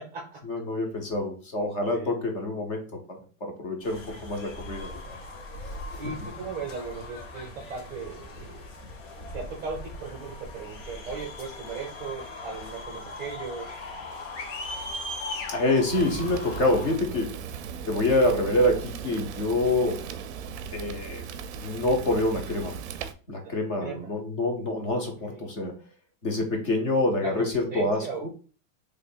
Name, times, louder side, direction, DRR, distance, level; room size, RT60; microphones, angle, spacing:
voice 1, 0.4-4.9 15.5-17.4 17.9-20.0 20.7-21.3 21.5-22.8 23.3-25.8 26.2-28.3, left 2 dB, 25° left, 3 dB, 0.5 m, -26 dB
sound 1, 3.8-17.0, left 2 dB, 70° left, 1.3 m, -40 dB
voice 2, 6.0-8.5 9.2-13.7 23.4-23.5 23.8-24.1 25.2-25.4 27.2-28.3, right 4 dB, 20° right, -2 dB, 0.6 m, -37 dB
Screaming, 13.6-16.3, left 8 dB, 85° left, 0.9 m, -43 dB
Fire, 15.9-23.1, right 6 dB, 60° right, 0.5 m, -37 dB
3.0 x 2.4 x 4.3 m, 0.38 s
supercardioid pair, 180°, 40 cm